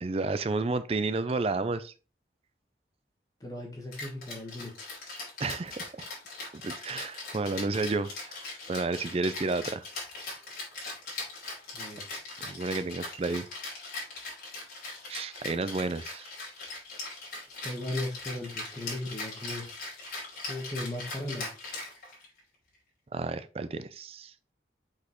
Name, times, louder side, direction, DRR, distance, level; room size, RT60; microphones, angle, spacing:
voice 1, 0.0-1.9 5.4-6.1 6.6-8.4 8.7-9.9 12.4-13.5 15.1-16.3 23.1-24.3, right 3 dB, 35° right, 0.4 m, -31 dB
voice 2, 3.4-4.7 11.7-12.2 17.6-19.7 20.5-21.5, left 1 dB, 20° left, 1.2 m, -37 dB
Rattle (instrument), 3.9-22.4, left 3 dB, 55° left, 3.2 m, -40 dB
6.1 x 5.3 x 3.0 m
head